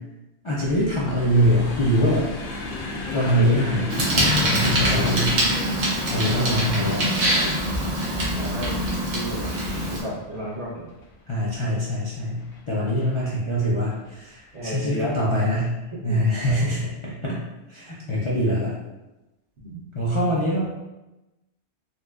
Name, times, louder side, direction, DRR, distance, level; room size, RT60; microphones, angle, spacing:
voice 1, 0.4-2.3 3.1-5.3 6.1-7.0 11.3-15.8 16.0-17.4 17.7-18.8 19.9-20.6, equal, 45° left, -7 dB, 0.4 m, -23 dB
sound 1, 0.6-11.7 12.4-13.0 13.9-14.1 14.4-14.6, left 2 dB, 85° left, 0.9 m, -36 dB
voice 2, 3.3-3.6 4.7-5.1 6.2-6.8 8.4-8.7 9.1-9.5 9.9-10.9 14.5-15.2 15.6-16.8 19.6-19.8 20.5-20.6, equal, 75° right, -6 dB, 1.3 m, -33 dB
Bicycle, 3.9-10.0, equal, 50° right, 0.9 m, -24 dB
4.0 x 2.2 x 2.4 m, 1.0 s
omnidirectional pair, 1.1 m